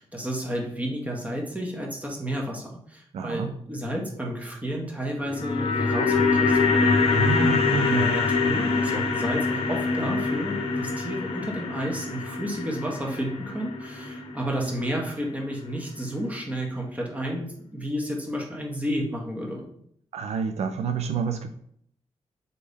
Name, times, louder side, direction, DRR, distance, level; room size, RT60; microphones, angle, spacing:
voice 1, 0.0-6.8 7.8-19.6, equal, 15° right, -1 dB, 1.3 m, -31 dB
voice 2, 3.1-3.5 7.1-8.0 20.1-21.5, right 6 dB, 75° right, 8 dB, 0.4 m, -28 dB
sound 1, 5.1-15.4 15.7-15.8, left 4 dB, 60° left, 0.8 m, -25 dB
4.1 x 3.4 x 3.5 m, 0.66 s
cardioid pair, 70°, 11 cm